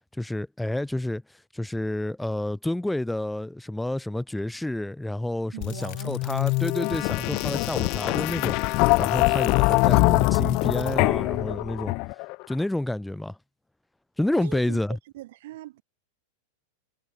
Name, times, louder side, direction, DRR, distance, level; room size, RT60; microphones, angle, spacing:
voice 1, 0.2-1.2 1.5-11.9 12.5-13.4 14.2-15.0, left 1 dB, 5° left, 1.9 m, -29 dB
voice 2, 5.5-6.3 7.2-8.1 9.4-9.9 14.3-14.8 15.1-15.8, right 16 dB, 55° right, 4.1 m, -42 dB
sound 1, 5.6-12.3, left 28 dB, 45° left, 0.3 m, -23 dB
figure-of-eight pair, 90°, 0 cm